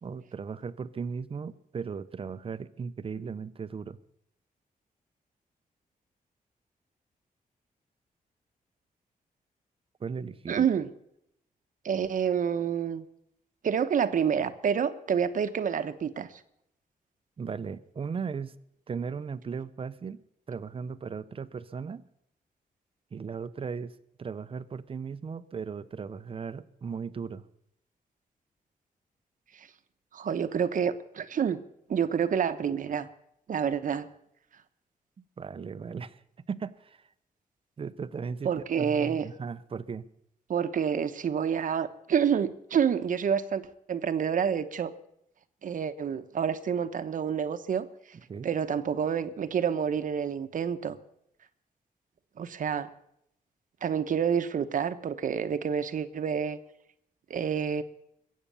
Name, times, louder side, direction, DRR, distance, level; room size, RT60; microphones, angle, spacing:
voice 1, 0.0-4.0 10.0-10.7 17.4-18.6 18.9-22.0 23.1-27.5 35.4-36.2 36.5-37.0 37.8-40.0 48.3-48.5, right 5 dB, 40° right, 14 dB, 0.7 m, -37 dB
voice 2, 10.5-10.9 11.8-13.0 13.6-16.3 29.5-29.7 30.1-31.6 31.9-33.1 33.5-34.1 38.4-39.3 40.5-43.6 43.9-44.9 45.6-47.9 48.4-51.0 52.4-52.9 53.8-56.6 57.3-57.8, right 7 dB, 60° right, 11 dB, 1.1 m, -28 dB
22.0 x 8.4 x 6.9 m, 0.75 s
wide cardioid pair, 130°, 15 cm